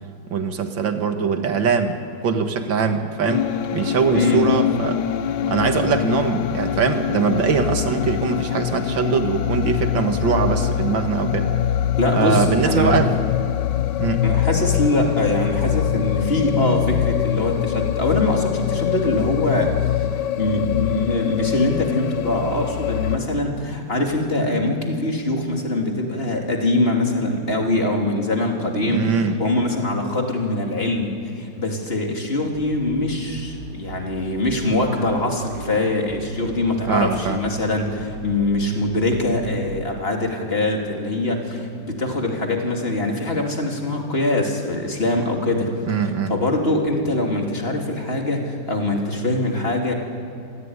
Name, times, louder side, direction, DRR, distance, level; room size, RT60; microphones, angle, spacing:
voice 1, 0.3-3.5 3.7-5.0 5.5-11.5 12.1-13.2 14.0-14.2 28.9-29.4 36.9-37.4 45.9-46.3, right 5 dB, 85° right, 6 dB, 2.3 m, -22 dB
sound 1, 3.3-23.2, left 11 dB, 75° left, 1.4 m, -24 dB
voice 2, 4.1-4.5 12.0-13.0 14.2-45.7 46.3-49.9, left 2 dB, 30° left, 1 dB, 3.3 m, -23 dB
sound 2, 32.5-39.6, right 2 dB, 45° right, 4.2 m, -38 dB
26.5 x 17.5 x 9.7 m, 2.7 s
omnidirectional pair, 2.0 m